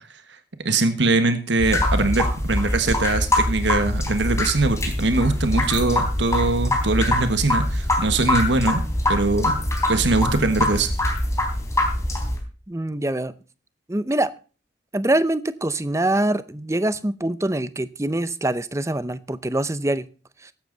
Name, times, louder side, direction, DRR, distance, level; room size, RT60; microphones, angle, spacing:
voice 1, 0.6-8.8 9.1-9.6 9.9-10.9, right 3 dB, 80° right, 9 dB, 1.5 m, -22 dB
sound 1, 1.6-12.4, left 1 dB, 15° left, 3.8 m, -23 dB
voice 2, 12.7-13.3 13.9-14.3 14.9-20.0 20.4-20.5, right 1 dB, 15° right, 15 dB, 0.6 m, -24 dB
15.0 x 11.5 x 4.0 m, 0.36 s
head